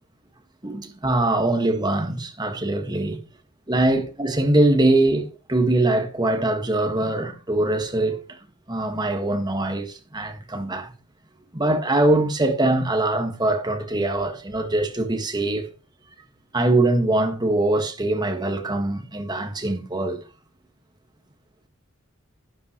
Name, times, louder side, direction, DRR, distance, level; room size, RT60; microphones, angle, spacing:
voice 1, 0.6-3.2 3.7-8.4 8.7-10.9 11.5-15.7 16.5-20.2, right 2 dB, 20° right, 1.7 m, -22 dB
12.0 x 11.0 x 3.1 m
head